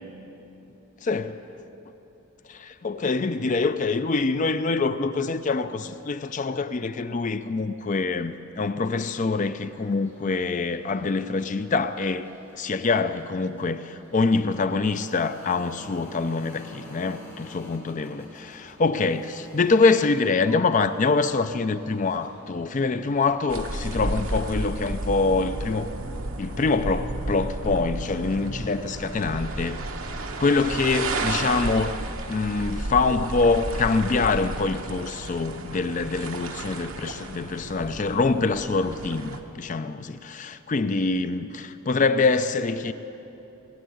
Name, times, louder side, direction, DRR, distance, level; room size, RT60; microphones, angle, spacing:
voice 1, 1.0-1.4 2.8-12.3 12.5-25.9 26.4-29.8 30.4-31.9 32.3-42.9, left 3 dB, 35° left, 0.4 m, -25 dB
sound 1, 9.6-24.4, left 1 dB, 10° left, 4.0 m, -50 dB
sound 2, 23.5-39.4, right 2 dB, 70° right, 1.0 m, -32 dB
18.5 x 9.2 x 7.8 m
head